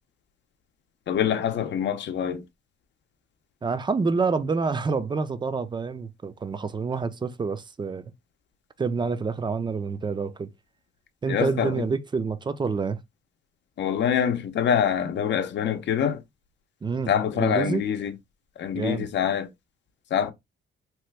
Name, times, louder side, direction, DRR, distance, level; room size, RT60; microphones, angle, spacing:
voice 1, 1.1-2.4 11.3-11.9 13.8-16.2 17.1-18.1 18.6-19.5 20.1-20.3, left 8 dB, 65° left, 0.6 m, -25 dB
voice 2, 3.6-8.0 8.8-10.5 11.2-13.0 16.8-17.8 18.7-19.1, right 4 dB, 25° right, 0.4 m, -27 dB
2.9 x 2.2 x 3.3 m
cardioid pair, 90°, 20 cm